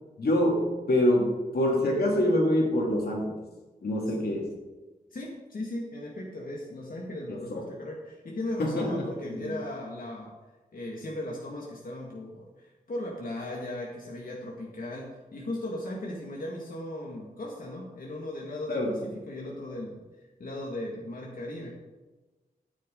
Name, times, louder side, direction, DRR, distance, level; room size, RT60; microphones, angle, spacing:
voice 1, 0.2-3.4 3.8-4.5 7.5-7.6 8.6-9.0 9.4-9.5 18.7-18.9, left 1 dB, 90° left, -1 dB, 2.8 m, -25 dB
voice 2, 5.1-10.3 10.7-20.0 20.4-21.7, left 1 dB, 65° left, -2 dB, 2.1 m, -37 dB
14.5 x 9.4 x 3.9 m, 1.2 s
wide cardioid pair, 125°, 16 cm